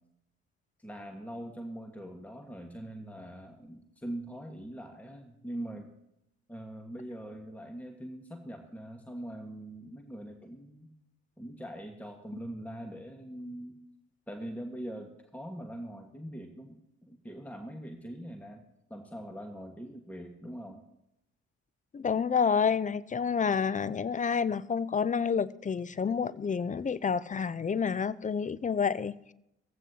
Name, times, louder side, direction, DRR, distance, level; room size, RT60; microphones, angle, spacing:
voice 1, 0.8-5.9 6.5-10.9 11.4-13.8 14.3-18.6 18.9-20.8, right 1 dB, 5° left, 1.5 m, -42 dB
voice 2, 21.9-29.3, left 6 dB, 20° left, 0.5 m, -29 dB
18.0 x 15.0 x 2.8 m
figure-of-eight pair, 45°, 37 cm